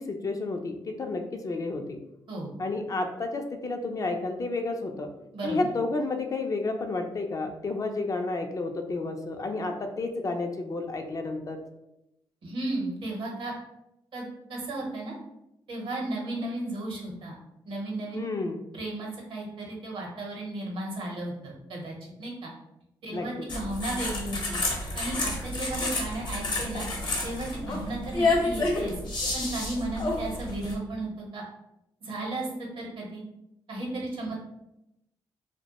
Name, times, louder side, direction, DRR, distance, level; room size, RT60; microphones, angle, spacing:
voice 1, 0.0-2.0 2.6-5.1 5.4-11.6 18.1-18.6 23.1-23.5, left 3 dB, 35° left, 5 dB, 0.4 m, -31 dB
voice 2, 5.3-5.7 12.4-13.5 14.1-15.1 15.7-17.3 17.7-18.2 18.7-22.5 23.0-26.9 27.2-28.9 29.3-31.4 32.0-33.2 33.7-34.5, right 2 dB, 70° right, -1 dB, 0.8 m, -34 dB
sound 1, 23.5-30.7, left 2 dB, 55° left, 0.8 m, -30 dB
2.2 x 2.1 x 2.8 m, 0.86 s
cardioid pair, 65°, 9 cm